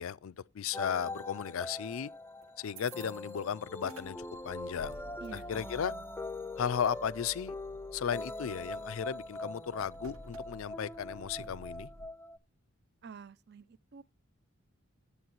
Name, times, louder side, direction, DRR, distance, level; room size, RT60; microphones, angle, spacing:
voice 1, 0.0-2.1 2.6-4.2 4.4-5.0 5.3-5.9 6.6-7.5 7.9-11.9, left 8 dB, 70° left, 0.4 m, -35 dB
sound 1, 0.7-12.4, left 2 dB, 10° left, 0.4 m, -43 dB
sound 2, 1.9-2.0 2.4-3.4 3.7-12.1, right 1 dB, 75° right, 1.4 m, -53 dB
voice 2, 5.2-6.0 13.0-14.0, right 6 dB, 50° right, 0.4 m, -50 dB
9.9 x 7.9 x 3.0 m
head